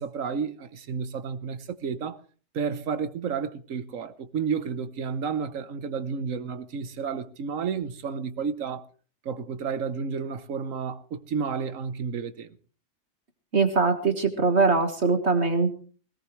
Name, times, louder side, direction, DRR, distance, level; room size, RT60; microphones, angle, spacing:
voice 1, 0.0-2.2 2.5-8.9 9.2-12.6, right 6 dB, 75° right, 1.3 m, -31 dB
voice 2, 13.5-15.7, right 4 dB, 55° right, 1.9 m, -22 dB
20.0 x 17.5 x 3.2 m
omnidirectional pair, 1.4 m